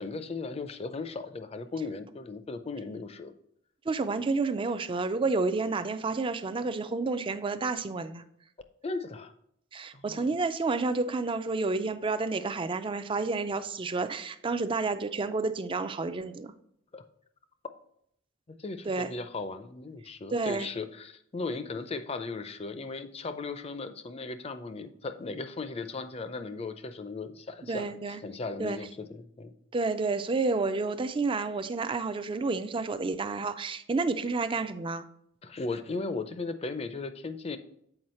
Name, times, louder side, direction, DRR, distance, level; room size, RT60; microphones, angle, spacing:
voice 1, 0.0-3.3 8.8-9.3 9.9-10.3 16.9-17.0 18.5-27.9 28.2-29.5 35.4-37.6, left 3 dB, 30° left, 10 dB, 0.5 m, -37 dB
voice 2, 3.9-8.2 9.7-16.5 18.9-19.1 20.3-20.7 27.7-28.2 28.6-28.8 29.7-35.1, right 3 dB, 25° right, 11 dB, 0.4 m, -30 dB
7.9 x 4.7 x 4.2 m, 0.72 s
head